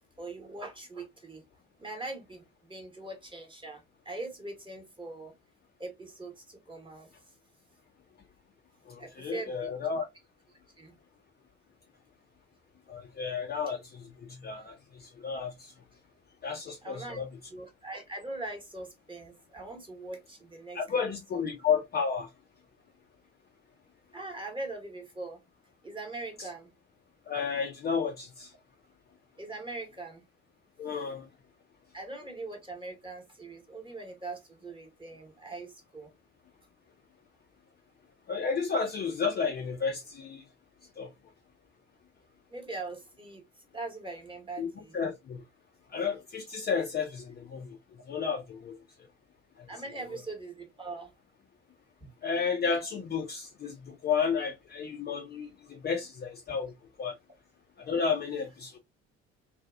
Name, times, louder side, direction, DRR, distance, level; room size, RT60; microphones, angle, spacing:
voice 1, 0.2-1.4 1.8-5.3 5.8-7.1 9.0-9.7 10.8-10.9 16.8-17.2 17.5-20.8 21.3-21.5 24.1-25.4 25.8-26.7 29.4-30.2 31.9-36.1 42.5-43.4 43.7-45.1 49.7-51.1 52.0-52.1, right 2 dB, 15° right, 1.1 m, -41 dB
voice 2, 8.9-10.1 12.9-15.7 16.4-17.3 20.7-22.3 27.3-28.5 30.8-31.3 38.3-40.4 41.0-41.1 44.6-44.7 44.9-45.4 45.9-47.8 48.1-48.7 49.6-49.7 52.2-56.7 57.0-57.2 57.8-58.8, left 6 dB, 30° left, 0.5 m, -32 dB
2.7 x 2.3 x 2.3 m
figure-of-eight pair, 55°, 36 cm